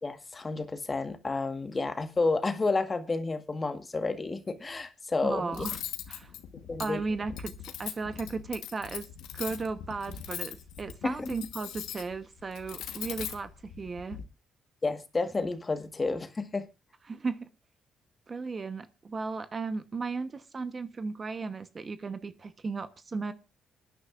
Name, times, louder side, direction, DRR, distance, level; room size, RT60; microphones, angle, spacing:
voice 1, 0.0-5.6 6.7-7.0 11.0-11.3 14.8-16.7, left 3 dB, 25° left, 1.4 m, -30 dB
voice 2, 5.2-5.8 6.1-6.3 6.8-7.5 7.8-9.1 9.3-14.2 17.1-17.5 18.3-23.3, right 4 dB, 35° right, 1.0 m, -35 dB
Cutlery silverware, 5.5-14.2, left 10 dB, 90° left, 1.3 m, -41 dB
26.5 x 10.0 x 2.5 m
cardioid pair, 90°, 0 cm